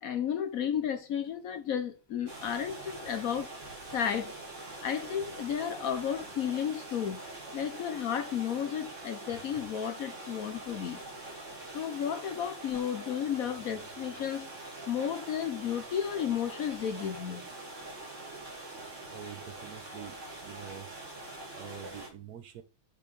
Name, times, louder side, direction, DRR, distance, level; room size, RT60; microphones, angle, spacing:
voice 1, 0.0-3.5 3.9-4.3 4.8-7.2 7.5-11.0 11.7-14.5 14.9-17.4, left 8 dB, 65° left, 1.0 m, -33 dB
sound 1, 2.3-22.1, right 2 dB, 45° right, 2.2 m, -44 dB
voice 2, 19.1-20.9 21.5-22.6, right 9 dB, 65° right, 1.1 m, -46 dB
5.7 x 4.1 x 5.1 m
omnidirectional pair, 1.9 m